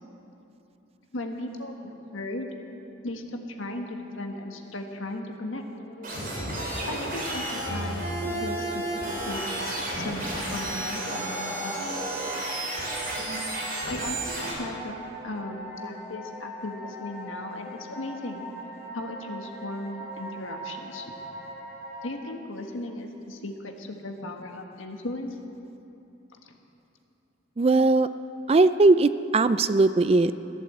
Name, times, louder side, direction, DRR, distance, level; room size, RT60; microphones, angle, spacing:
voice 1, 1.1-2.5 3.0-5.6 6.8-11.8 13.8-14.9 15.2-18.4 18.9-21.1 22.0-25.4 26.4-26.5, left 1 dB, 85° left, 3 dB, 1.6 m, -36 dB
sound 1, 5.6-22.1, equal, 45° left, 4.5 m, -41 dB
sound 2, 6.0-14.5, right 1 dB, 45° right, 4.3 m, -32 dB
voice 2, 27.6-28.1 28.5-30.3, right 3 dB, 30° right, 13 dB, 0.3 m, -19 dB
15.5 x 11.5 x 7.8 m, 2.9 s
head